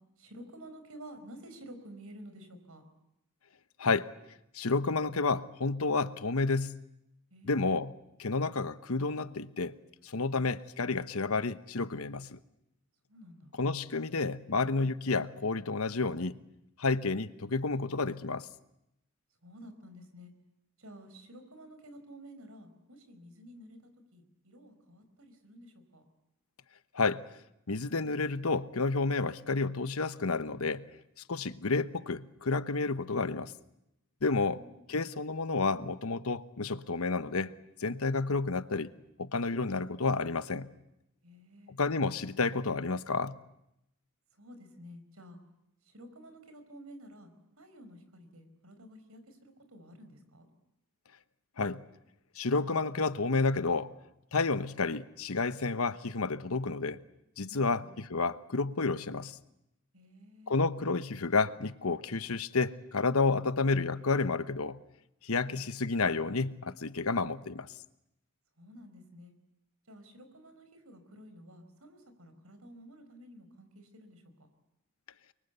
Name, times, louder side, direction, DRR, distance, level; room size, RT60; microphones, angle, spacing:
voice 1, 0.2-2.8 7.3-7.6 13.1-13.5 19.4-20.3 20.8-23.8 24.1-26.0 31.4-31.7 34.4-34.8 41.2-41.8 44.3-45.4 45.8-47.3 47.6-50.5 57.5-57.9 59.9-60.5 68.6-69.3 69.9-74.2, equal, 85° right, 4.8 m, -51 dB
voice 2, 4.5-6.7 7.5-7.9 8.2-9.7 10.0-12.4 13.6-16.4 16.8-18.5 26.9-27.2 27.7-30.8 31.3-33.5 34.2-34.6 34.9-37.5 37.8-38.9 39.2-40.7 41.7-43.4 51.6-51.8 52.4-53.9 54.3-57.0 57.4-59.3 60.5-64.8 65.2-67.7, left 3 dB, 85° left, 1.1 m, -30 dB
29.5 x 23.5 x 8.2 m
head